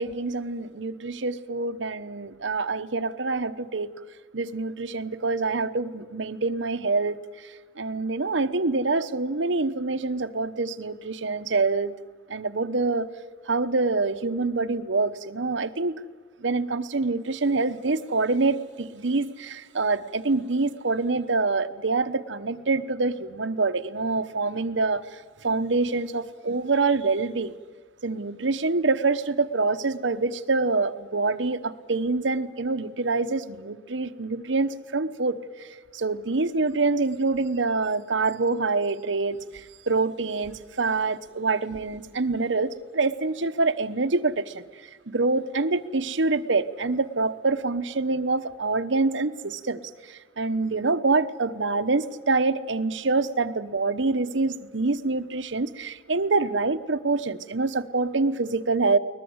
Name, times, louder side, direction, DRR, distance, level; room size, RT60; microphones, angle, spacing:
voice 1, 0.0-3.9 4.3-7.2 7.8-11.9 12.3-13.1 13.5-15.9 16.4-25.0 25.4-27.5 28.0-35.4 35.9-44.6 45.1-49.8 50.1-59.0, right 3 dB, 80° right, 1.0 m, -26 dB
21.5 x 20.5 x 8.0 m
head